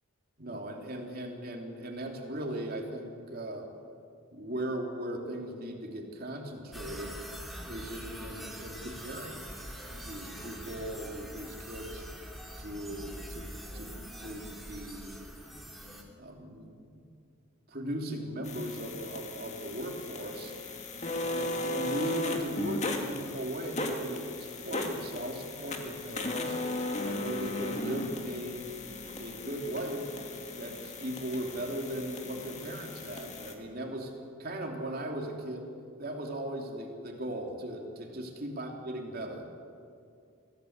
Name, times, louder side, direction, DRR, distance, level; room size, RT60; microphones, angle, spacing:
voice 1, 0.4-3.7 4.3-7.1 7.6-9.5 9.9-12.0 12.6-13.9 14.2-15.6 16.2-17.1 17.7-20.5 21.1-26.6 27.0-28.7 29.1-30.1 30.5-34.1 34.4-35.7 36.0-39.5, right 1 dB, 45° right, 1 dB, 3.0 m, -38 dB
sound 1, 6.7-16.0, equal, ahead, 2.7 m, -44 dB
sound 2, 18.4-33.5, left 2 dB, 35° left, 2.0 m, -37 dB
23.5 x 16.0 x 8.1 m, 2.4 s
head